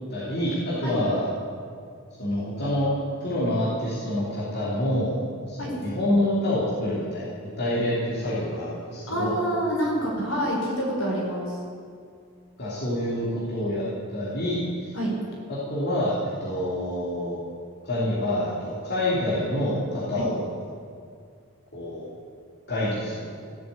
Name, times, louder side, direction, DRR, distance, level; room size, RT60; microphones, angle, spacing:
voice 1, 0.1-1.3 2.2-2.9 3.2-5.2 5.5-9.4 12.6-13.8 14.1-14.9 15.5-17.4 17.8-20.5 21.7-22.1 22.7-23.3, left 1 dB, 50° left, -9 dB, 3.3 m, -27 dB
voice 2, 9.1-11.6 14.9-15.1 20.1-20.2, equal, 70° left, -3 dB, 4.7 m, -27 dB
16.5 x 7.7 x 8.6 m, 2.2 s
head